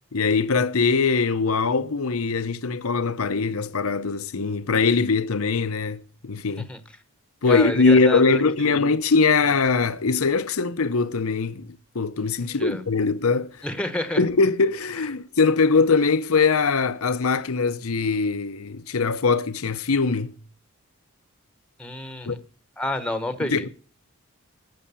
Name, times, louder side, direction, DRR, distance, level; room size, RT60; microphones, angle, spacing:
voice 1, 0.1-6.7 7.4-11.7 11.9-13.6 14.2-20.3 22.3-22.4 23.4-23.7, left 4 dB, 75° left, 0.8 m, -22 dB
voice 2, 7.5-8.8 12.6-12.8 13.6-14.2 21.8-22.4 22.8-23.7, left 1 dB, 5° left, 1.1 m, -29 dB
13.0 x 7.6 x 6.9 m
head